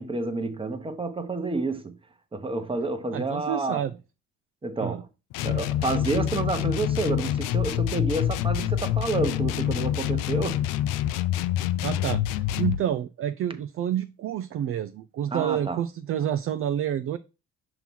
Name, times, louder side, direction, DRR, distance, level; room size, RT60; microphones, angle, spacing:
voice 1, 0.0-2.0 2.3-3.8 4.6-5.1 5.4-10.6 15.3-15.8, right 3 dB, 15° right, 1.0 m, -29 dB
voice 2, 3.1-3.9 4.8-5.0 11.8-17.2, right 10 dB, 45° right, 0.4 m, -29 dB
sound 1, 5.3-12.8, left 12 dB, 80° left, 0.5 m, -26 dB
5.8 x 3.0 x 5.4 m
supercardioid pair, 80°, 32 cm